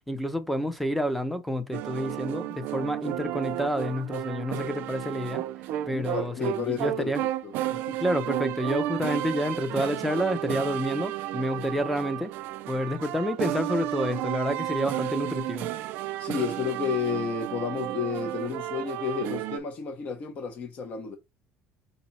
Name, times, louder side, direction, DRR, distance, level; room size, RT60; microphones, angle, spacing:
voice 1, 0.1-5.4 5.9-7.2 8.0-12.3 12.7-15.7, equal, ahead, 0.7 m, -29 dB
sound 1, 1.7-19.6, right 14 dB, 65° right, 0.4 m, -32 dB
voice 2, 5.9-8.0 16.2-21.2, left 6 dB, 40° left, 0.9 m, -32 dB
5.2 x 2.2 x 4.1 m
cardioid pair, 145°, 4 cm